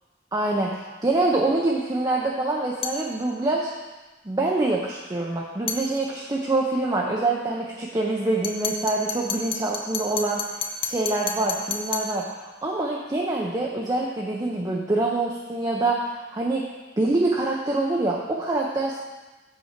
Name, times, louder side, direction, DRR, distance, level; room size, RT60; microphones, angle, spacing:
voice 1, 0.3-3.7 4.3-10.4 10.8-16.7 17.0-19.0, right 2 dB, 20° right, -3 dB, 0.6 m, -25 dB
sound 1, 2.8-3.1 5.7-5.9 8.4-12.2, left 5 dB, 35° left, 0.6 m, -30 dB
6.9 x 5.7 x 4.4 m, 1.2 s
head